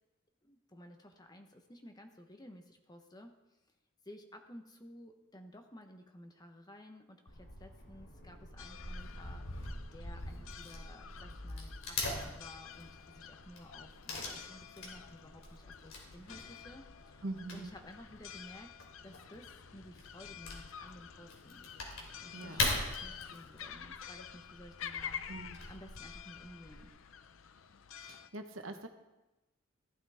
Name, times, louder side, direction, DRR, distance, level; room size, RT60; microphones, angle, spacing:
voice 1, 0.4-3.3 4.0-17.2 17.5-18.7 19.0-21.7 22.2-25.2 25.7-26.9, left 1 dB, 20° left, 5 dB, 1.0 m, -54 dB
Wood / Tearing, 7.3-26.9, left 2 dB, 85° left, 2.9 m, -43 dB
sound 1, 8.6-28.3, left 8 dB, 70° left, 0.6 m, -50 dB
voice 2, 17.2-17.7 22.3-22.6 25.3-25.6 28.0-28.9, right 2 dB, 70° right, 6 dB, 1.2 m, -43 dB
14.5 x 12.0 x 3.6 m, 1.0 s
head